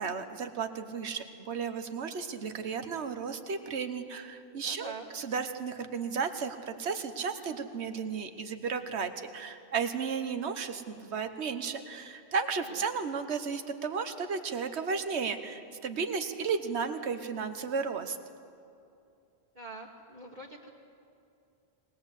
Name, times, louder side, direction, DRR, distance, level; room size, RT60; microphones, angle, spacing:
voice 1, 0.0-18.2, right 5 dB, 75° right, 8 dB, 1.4 m, -34 dB
voice 2, 4.5-5.1 12.7-12.8 19.5-20.7, right 3 dB, 40° right, -2 dB, 1.8 m, -45 dB
21.5 x 19.5 x 8.2 m, 2.6 s
omnidirectional pair, 1.1 m